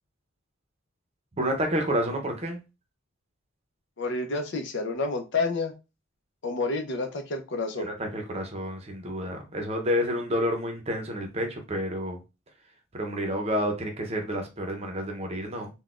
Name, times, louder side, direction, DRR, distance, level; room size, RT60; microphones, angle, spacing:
voice 1, 1.4-2.6 7.8-12.2 12.9-15.7, equal, 30° right, 0.7 m, -29 dB
voice 2, 4.0-5.7 6.4-7.9, left 3 dB, 60° left, 0.6 m, -29 dB
3.8 x 2.2 x 2.4 m
head